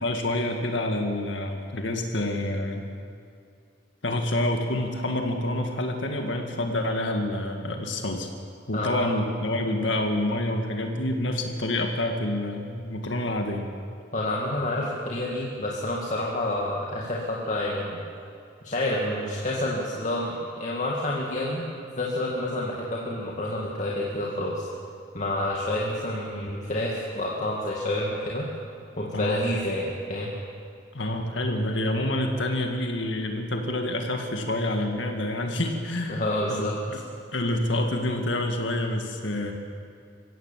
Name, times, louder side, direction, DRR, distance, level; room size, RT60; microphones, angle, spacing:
voice 1, 0.0-2.9 4.0-8.3 8.7-13.7 29.1-29.5 30.9-36.2 36.5-37.0 37.3-39.5, left 1 dB, 70° left, 3 dB, 1.9 m, -27 dB
voice 2, 8.7-9.1 14.1-18.0 18.6-21.6 22.0-24.7 25.1-28.5 29.0-30.3 36.1-36.8, left 1 dB, 40° left, -4 dB, 2.3 m, -28 dB
24.5 x 16.0 x 7.5 m, 2.3 s
head